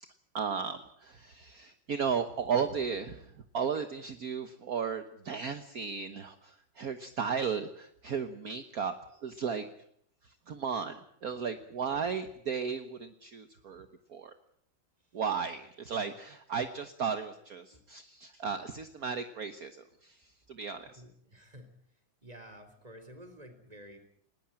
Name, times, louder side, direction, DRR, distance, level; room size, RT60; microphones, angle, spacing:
voice 1, 0.0-8.9 9.2-9.7 10.5-14.3 15.1-20.2 20.5-20.9, right 6 dB, 50° right, 9 dB, 1.6 m, -35 dB
voice 2, 20.8-21.7 22.2-24.0, equal, 20° right, 8 dB, 3.9 m, -51 dB
20.5 x 19.0 x 9.0 m, 0.69 s
omnidirectional pair, 2.1 m